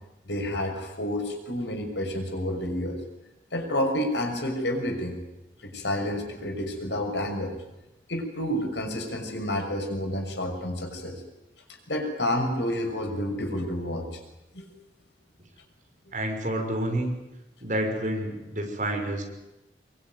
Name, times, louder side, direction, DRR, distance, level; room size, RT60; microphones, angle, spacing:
voice 1, 0.3-3.0 3.5-5.2 5.6-7.5 8.1-11.2 11.9-14.1 14.5-14.7, left 1 dB, 85° left, 4 dB, 6.4 m, -29 dB
voice 2, 16.1-17.1 17.6-19.2, right 1 dB, 45° right, 2 dB, 6.1 m, -29 dB
24.5 x 22.5 x 9.6 m, 0.93 s
head